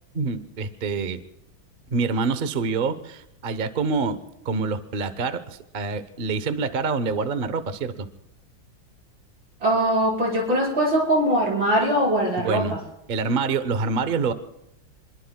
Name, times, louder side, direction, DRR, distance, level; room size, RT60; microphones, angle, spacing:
voice 1, 0.1-1.2 1.9-4.2 4.4-8.1 12.4-12.7 13.1-14.3, right 4 dB, 50° right, 12 dB, 0.6 m, -26 dB
voice 2, 9.6-12.8, right 1 dB, 70° right, -2 dB, 5.8 m, -21 dB
29.5 x 21.5 x 2.3 m, 0.87 s
omnidirectional pair, 2.2 m